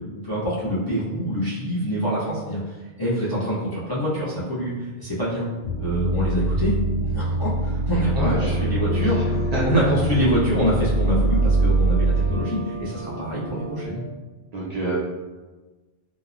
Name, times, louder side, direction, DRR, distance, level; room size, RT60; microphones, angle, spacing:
voice 1, 0.1-5.5 5.8-6.7 7.0-9.4 9.6-14.0, equal, 30° left, -10 dB, 0.4 m, -25 dB
sound 1, 5.6-12.3, right 2 dB, 70° right, 0.8 m, -23 dB
voice 2, 8.2-9.7 14.5-14.9, right 2 dB, 55° right, -7 dB, 0.5 m, -30 dB
sound 2, 8.3-14.0, equal, 70° left, 0.8 m, -36 dB
2.9 x 2.0 x 2.4 m, 1.2 s
omnidirectional pair, 1.1 m